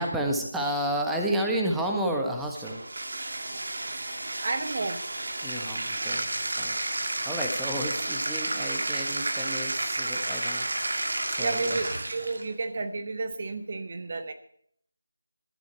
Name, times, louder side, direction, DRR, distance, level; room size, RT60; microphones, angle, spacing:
voice 1, 0.0-2.8 5.4-6.3 6.6-10.7 11.3-12.0, right 1 dB, 5° right, 1 dB, 1.4 m, -31 dB
Bathtub (filling or washing), 2.5-12.5, right 2 dB, 60° right, 2.4 m, -31 dB
voice 2, 4.4-5.0 11.4-14.3, right 3 dB, 40° right, 8 dB, 1.2 m, -31 dB
15.0 x 12.5 x 4.5 m, 0.63 s
figure-of-eight pair, 165°, 0 cm